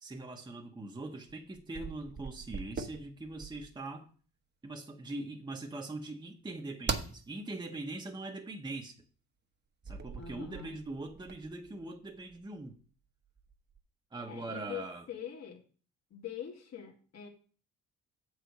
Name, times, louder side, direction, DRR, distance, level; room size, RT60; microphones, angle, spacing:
voice 1, 0.0-4.1 4.6-9.0 9.8-12.8 14.1-15.0, right 2 dB, 15° right, 1.1 m, -42 dB
sound 1, 1.3-3.8 6.9-7.2 9.8-12.7 13.3-13.8, right 5 dB, 35° right, 1.1 m, -41 dB
voice 2, 10.2-10.7 14.3-15.6 16.1-17.3, left 9 dB, 60° left, 2.0 m, -43 dB
7.8 x 4.8 x 6.6 m
cardioid pair, 90°, 30 cm